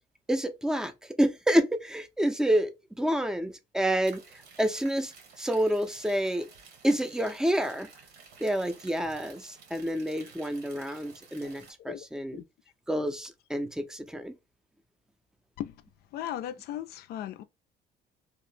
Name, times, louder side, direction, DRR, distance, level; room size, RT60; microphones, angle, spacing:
voice 1, 0.3-4.2 4.6-5.1 5.4-6.5 6.8-7.9 8.4-12.4 12.9-14.3, equal, 5° right, 0.4 m, -28 dB
sound 1, 4.0-11.7, right 5 dB, 80° right, 1.0 m, -52 dB
voice 2, 16.1-17.4, left 11 dB, 70° left, 0.4 m, -36 dB
2.8 x 2.0 x 3.1 m
cardioid pair, 110°, 17 cm